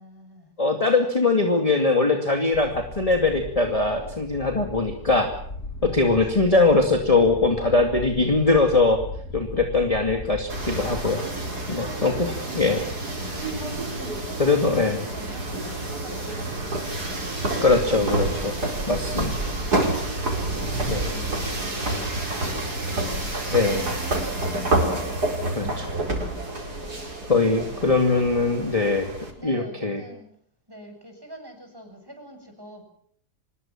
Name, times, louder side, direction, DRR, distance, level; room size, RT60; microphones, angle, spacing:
voice 1, 0.0-0.5 5.8-6.9 13.1-18.4 20.6-22.8 27.5-28.2 29.4-30.3 30.7-32.8, equal, 15° right, 5 dB, 7.2 m, -47 dB
voice 2, 0.6-5.3 5.8-9.0 9.3-11.2 11.7-12.8 14.4-15.0 17.6-18.5 18.9-19.3 20.9-21.1 23.5-23.9 25.5-25.9 27.3-29.1 29.4-30.0, left 3 dB, 20° left, 4 dB, 2.5 m, -21 dB
sound 1, 2.5-11.1, left 2 dB, 65° left, 5.8 m, -38 dB
sound 2, 10.5-29.3, right 2 dB, 70° right, 5.6 m, -28 dB
25.5 x 21.0 x 7.4 m, 0.63 s
omnidirectional pair, 1.7 m